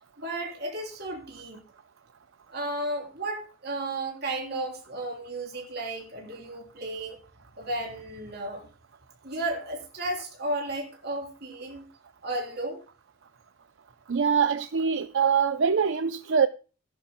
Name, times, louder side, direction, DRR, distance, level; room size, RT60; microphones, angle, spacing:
voice 1, 0.2-1.6 2.5-7.2 7.6-8.7 9.2-11.8 12.2-12.8, right 1 dB, 55° right, 3.4 m, -33 dB
voice 2, 14.1-16.5, right 6 dB, 70° right, 0.5 m, -23 dB
17.0 x 11.0 x 2.2 m
head